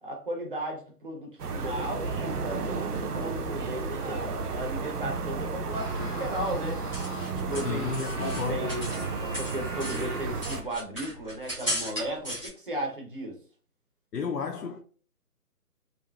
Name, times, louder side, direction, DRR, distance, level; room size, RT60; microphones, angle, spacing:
voice 1, 0.0-6.8 7.4-7.8 8.1-8.9 9.2-13.4, right 1 dB, 35° right, 0.6 m, -35 dB
sound 1, 1.4-10.6, right 4 dB, 80° right, 0.6 m, -33 dB
Screaming, 5.7-10.6, left 1 dB, 35° left, 0.7 m, -42 dB
sound 2, 6.6-9.1 9.3-12.5, equal, 5° left, 0.8 m, -36 dB
voice 2, 7.5-8.8 14.1-14.8, left 5 dB, 80° left, 0.6 m, -33 dB
2.7 x 2.4 x 2.2 m
figure-of-eight pair, 160°, 47 cm